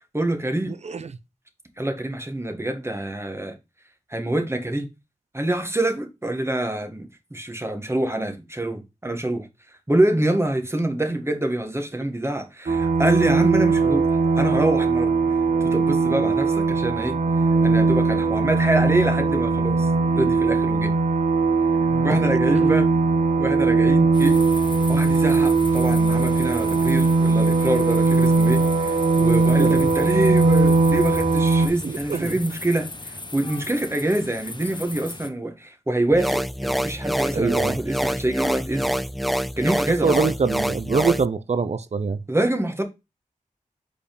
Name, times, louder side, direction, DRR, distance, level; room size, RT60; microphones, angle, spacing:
voice 1, 0.1-0.8 1.8-3.6 4.1-4.9 5.3-9.5 9.9-14.1 14.4-15.1 15.6-17.2 17.6-19.9 20.1-20.9 22.0-22.9 23.4-24.4 24.9-32.9 33.3-38.9 39.6-40.2 42.3-42.8, right 1 dB, 20° right, 1.7 m, -25 dB
voice 2, 0.7-1.1 21.9-22.7 29.6-29.8 31.8-32.3 37.3-37.7 40.0-42.2, right 5 dB, 50° right, 0.7 m, -25 dB
sound 1, 12.7-31.7, right 3 dB, 70° right, 1.3 m, -19 dB
sound 2, 24.1-35.3, left 2 dB, 35° left, 1.0 m, -37 dB
sound 3, 36.1-41.3, equal, ahead, 0.4 m, -26 dB
5.2 x 4.3 x 5.2 m
cardioid pair, 45°, 14 cm